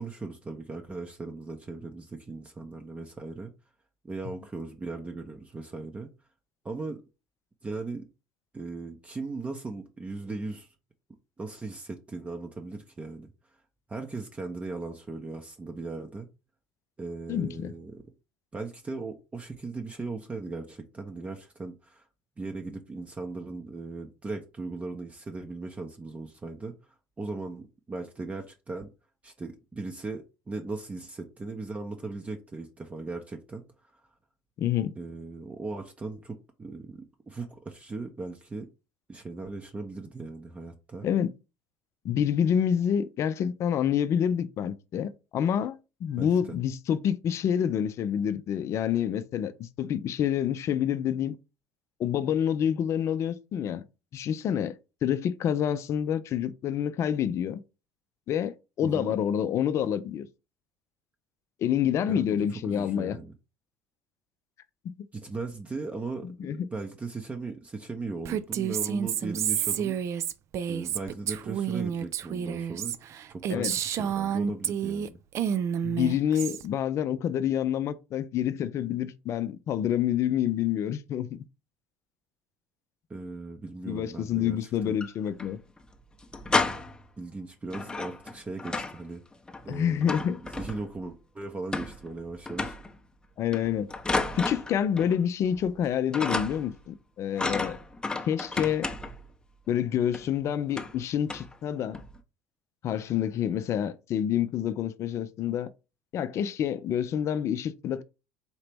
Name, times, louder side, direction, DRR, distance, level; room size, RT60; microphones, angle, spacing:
voice 1, 0.0-3.5 4.0-6.1 6.6-7.0 7.6-8.1 8.5-10.7 11.4-13.3 13.9-16.3 17.0-18.0 18.5-22.0 22.4-26.7 27.2-28.9 29.2-33.6 33.9-34.0 35.0-38.7 39.1-41.1 46.2-46.6 58.8-59.2 62.1-62.2 62.6-63.3 65.1-70.0 70.7-72.9 73.3-75.2 83.1-85.0 87.2-89.2 89.6-92.8, right 3 dB, 20° right, 0.7 m, -38 dB
voice 2, 17.3-17.7 34.6-34.9 41.0-41.3 42.0-51.4 52.0-53.8 54.1-57.6 58.3-60.3 61.6-63.2 64.8-65.0 66.2-66.7 73.5-73.7 75.8-81.4 83.9-85.6 89.7-90.4 93.4-93.9 94.3-97.8 98.3-98.9 99.7-102.0 102.8-105.7 106.1-108.0, left 9 dB, 45° left, 0.5 m, -28 dB
Female speech woman speaking, 68.2-75.1 75.3-76.6, right 8 dB, 45° right, 0.4 m, -30 dB
sound 1, 84.8-85.5 85.8-85.9 86.2-87.1 87.7-89.0 89.3-91.0 91.7-92.2 92.5-92.9 93.5-95.2 95.5-95.8 96.1-96.8 97.4-99.3 100.1-100.3 100.7-101.0 101.3-101.6 101.9-102.2, left 3 dB, 15° left, 0.7 m, -32 dB
4.3 x 2.8 x 3.4 m
hypercardioid pair, 70°, 7 cm